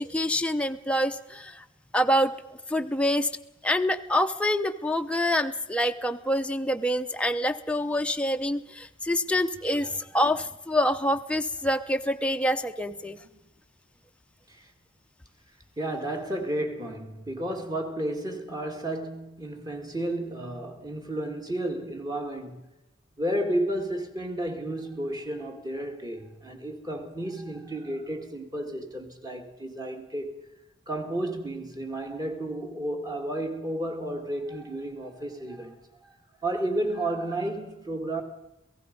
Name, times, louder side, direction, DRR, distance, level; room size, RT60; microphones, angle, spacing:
voice 1, 0.0-1.6 1.9-2.3 2.7-3.3 3.6-13.2, left 1 dB, 5° left, 0.8 m, -26 dB
voice 2, 15.8-22.6 23.2-30.3 30.9-35.8 36.0-36.2 36.4-38.2, right 1 dB, 20° right, 2.3 m, -32 dB
28.5 x 17.5 x 5.4 m
head